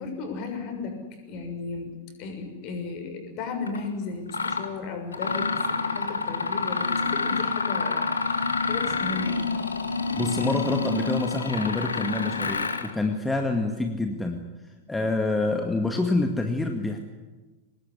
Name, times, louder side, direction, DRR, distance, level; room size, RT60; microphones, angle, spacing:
voice 1, 0.0-1.9 2.2-9.4, left 4 dB, 40° left, 5 dB, 6.6 m, -35 dB
Mechanisms, 3.7-3.8 4.3-4.7 5.1-12.9, left 4 dB, 75° left, 2.0 m, -28 dB
voice 2, 10.2-14.4 14.9-17.0, left 2 dB, 10° left, 3 dB, 2.0 m, -27 dB
24.0 x 20.5 x 9.9 m, 1.2 s
figure-of-eight pair, 90°, 0 cm